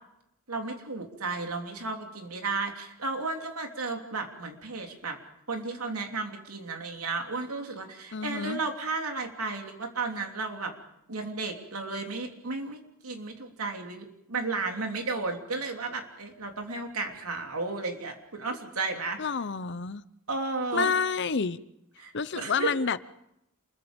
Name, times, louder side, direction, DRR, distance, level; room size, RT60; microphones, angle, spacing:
voice 1, 0.5-5.2 5.5-10.7 11.1-19.2 20.3-20.9 22.0-22.7, right 3 dB, 85° right, 3 dB, 3.2 m, -33 dB
voice 2, 8.1-8.6 19.2-20.0 20.7-21.6 22.1-23.0, left 5 dB, 55° left, 16 dB, 0.8 m, -29 dB
27.5 x 22.0 x 5.3 m, 0.82 s
head